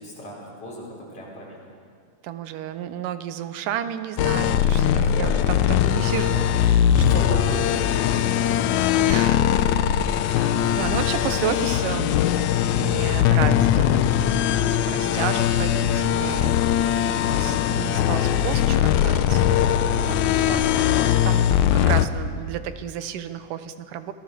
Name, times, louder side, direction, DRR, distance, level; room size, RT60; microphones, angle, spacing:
voice 1, 0.0-1.7 4.8-5.5 6.8-8.6, equal, 45° left, -4 dB, 6.6 m, -36 dB
voice 2, 2.2-4.8 5.2-7.4 9.0-9.4 10.3-12.2 12.8-14.4 14.9-16.6 17.2-19.6 20.1-24.1, right 10 dB, 90° right, 11 dB, 2.5 m, -32 dB
sound 1, 4.2-22.1, left 10 dB, 75° left, 1.9 m, -20 dB
26.5 x 18.5 x 6.8 m, 2.1 s
omnidirectional pair, 3.7 m